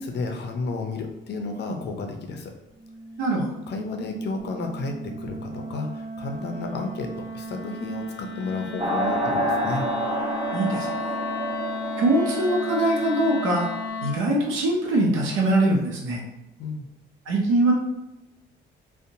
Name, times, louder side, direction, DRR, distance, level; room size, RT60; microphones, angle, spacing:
voice 1, 0.0-2.5 3.7-9.9 16.6-16.9, left 3 dB, 60° left, 3 dB, 0.5 m, -32 dB
Wind instrument woodwind instrument, 2.8-14.3, left 2 dB, 10° left, 1.0 m, -35 dB
sound 1, 8.8-13.8, right 1 dB, 25° right, 0.5 m, -29 dB
voice 2, 10.5-10.9 12.0-13.7 14.0-16.2 17.3-17.7, right 1 dB, 90° right, -2 dB, 0.6 m, -22 dB
2.7 x 2.0 x 2.6 m, 0.89 s
cardioid pair, 90°, 20 cm